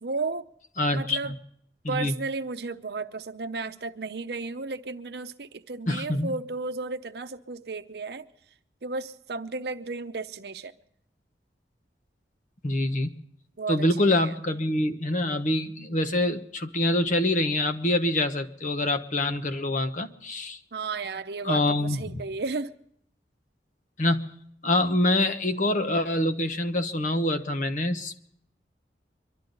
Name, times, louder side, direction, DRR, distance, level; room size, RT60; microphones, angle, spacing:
voice 1, 0.0-0.5 0.9-1.3 1.9-8.3 8.8-10.7 13.6-14.3 20.7-22.7, right 3 dB, 65° right, 0.8 m, -33 dB
voice 2, 0.8-1.2 1.8-2.1 5.9-6.3 12.6-13.1 13.7-20.6 21.4-22.0 24.0-24.3 24.6-28.2, left 1 dB, 45° left, 1.0 m, -25 dB
24.0 x 12.5 x 3.9 m
head